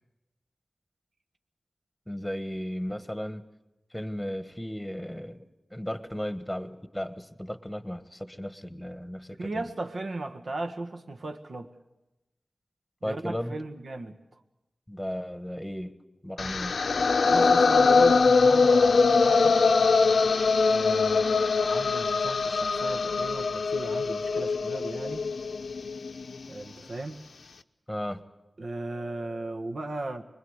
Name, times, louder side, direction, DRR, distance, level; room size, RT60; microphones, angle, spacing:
voice 1, 2.1-3.4 3.9-5.4 5.7-9.6 13.0-13.6 14.9-15.9 16.2-16.8 27.9-28.2, equal, 5° left, 10 dB, 1.4 m, -35 dB
voice 2, 9.4-11.7 13.0-14.2 17.2-19.5 20.6-25.3 26.5-27.2 28.6-30.2, right 2 dB, 70° right, 5 dB, 1.7 m, -36 dB
sound 1, 16.4-26.4, left 4 dB, 85° left, 0.8 m, -23 dB
25.0 x 21.5 x 8.1 m, 0.99 s
wide cardioid pair, 95°, 0 cm